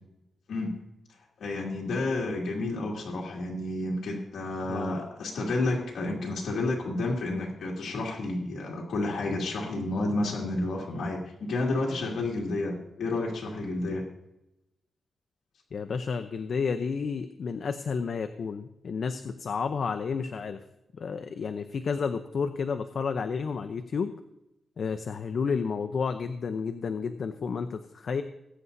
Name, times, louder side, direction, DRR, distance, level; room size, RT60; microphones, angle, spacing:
voice 1, 1.4-14.1, left 2 dB, 80° left, -3 dB, 2.3 m, -30 dB
voice 2, 15.7-20.6 20.9-24.1 24.8-28.2, left 5 dB, 65° left, 8 dB, 0.7 m, -31 dB
21.0 x 9.5 x 2.7 m, 0.88 s
cardioid pair, 95°, 0 cm